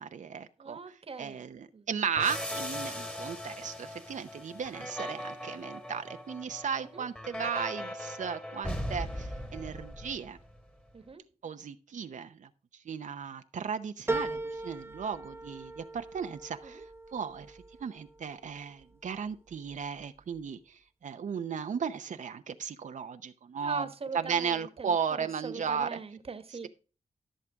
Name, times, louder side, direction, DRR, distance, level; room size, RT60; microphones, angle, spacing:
voice 1, 0.0-10.4 11.4-16.8 17.1-23.9 24.1-26.0 26.5-26.7, right 7 dB, 70° right, 0.7 m, -36 dB
voice 2, 0.6-1.4 1.7-1.8 6.9-7.1 10.9-11.2 16.6-16.8 23.6-26.7, right 4 dB, 45° right, 1.4 m, -41 dB
sound 1, 2.1-10.6, left 1 dB, 10° left, 1.8 m, -39 dB
sound 2, 14.1-18.8 19.3-20.0 20.4-20.5, right 2 dB, 20° right, 0.8 m, -39 dB
14.0 x 6.6 x 3.5 m
wide cardioid pair, 95°, 13 cm